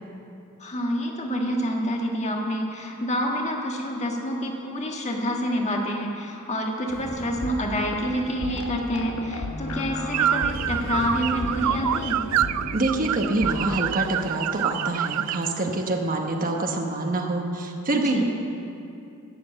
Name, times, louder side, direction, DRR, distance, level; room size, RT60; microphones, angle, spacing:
voice 1, 0.6-12.2 17.9-18.2, equal, 30° left, 0 dB, 1.5 m, -28 dB
sound 1, 6.9-13.8, left 1 dB, 75° left, 1.1 m, -34 dB
sound 2, 10.1-15.5, right 11 dB, 90° right, 0.3 m, -26 dB
voice 2, 12.7-18.2, right 2 dB, 40° right, 2 dB, 1.0 m, -26 dB
12.0 x 7.8 x 8.8 m, 2.6 s
head